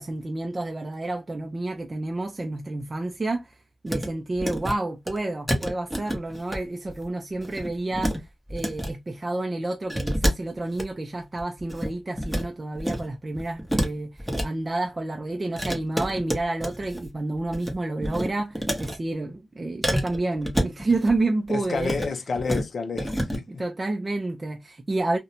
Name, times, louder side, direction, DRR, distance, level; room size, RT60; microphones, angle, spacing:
voice 1, 0.0-3.6 3.8-21.9 23.5-25.2, right 2 dB, 25° right, 0.3 m, -29 dB
sound 1, 3.9-4.1 4.3-4.7 5.1-5.2 5.5-6.6 6.9-7.0 7.4-8.2 8.5-8.9 9.9-10.8 11.3-12.4 12.7-13.1 13.3-14.5 15.6-17.1 17.3-17.7 18.0-19.0 19.8-21.2 21.7-22.1 22.4-22.6 22.9-23.4, equal, ahead, 0.7 m, -28 dB
voice 2, 21.5-23.5, left 4 dB, 55° left, 0.4 m, -29 dB
2.5 x 2.1 x 2.8 m
wide cardioid pair, 120°, 0 cm